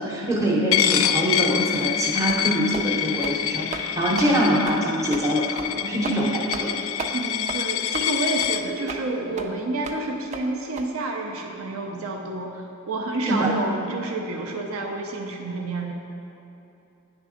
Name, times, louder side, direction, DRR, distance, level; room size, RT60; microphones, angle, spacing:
voice 1, 0.0-6.8 13.3-13.5, equal, 15° right, -4 dB, 0.8 m, -24 dB
Coin (dropping), 0.7-8.6, left 10 dB, 70° left, 0.3 m, -26 dB
sound 1, 1.8-1.9 2.3-2.4 2.7-2.9 3.2-3.4 3.7-3.9 4.2-4.3 4.7-4.8 5.1-5.3 5.6-5.7 6.0-6.2 6.5-6.7 7.0-7.1 7.5-7.6 7.9-8.1 8.4-8.5 8.9-9.0 9.4-9.5 9.8-10.0 10.3-10.4 10.8-10.9, right 4 dB, 30° right, 0.4 m, -34 dB
voice 2, 7.1-15.9, right 2 dB, 75° right, 1 dB, 0.6 m, -29 dB
10.0 x 3.7 x 5.0 m, 2.9 s
head